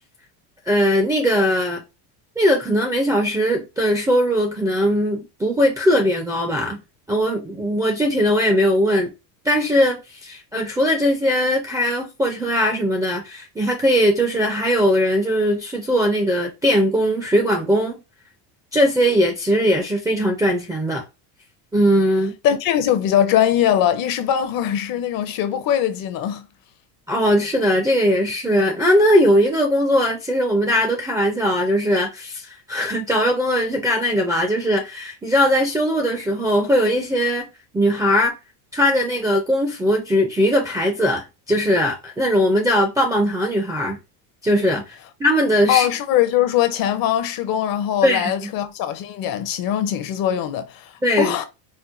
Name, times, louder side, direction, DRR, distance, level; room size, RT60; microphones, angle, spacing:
voice 1, 0.7-1.8 2.4-6.8 7.1-9.1 9.4-18.0 18.7-21.0 21.7-22.3 27.1-37.5 37.7-38.3 38.7-44.0 44.4-44.8 45.2-45.9 48.0-48.5 51.0-51.4, equal, 10° right, 0.3 m, -19 dB
voice 2, 22.4-26.5 45.7-50.9 51.2-51.4, left 10 dB, 45° left, 0.6 m, -21 dB
4.4 x 2.1 x 2.4 m
supercardioid pair, 130°, 50 cm